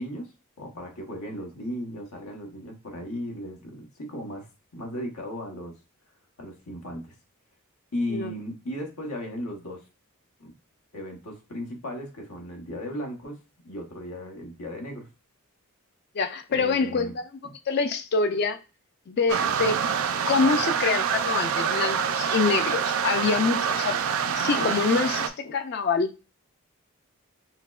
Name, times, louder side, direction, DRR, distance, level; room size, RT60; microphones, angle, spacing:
voice 1, 0.0-5.7 6.4-7.1 7.9-9.9 10.4-10.5 10.9-15.1 16.5-17.2 17.4-17.5, equal, 90° left, 1.1 m, -36 dB
voice 2, 16.1-17.3 17.7-18.6 19.1-19.8 20.3-24.0 24.3-26.1, left 4 dB, 45° left, 0.3 m, -25 dB
sound 1, 19.3-25.3, right 7 dB, 65° right, 0.4 m, -26 dB
5.6 x 2.1 x 2.3 m
head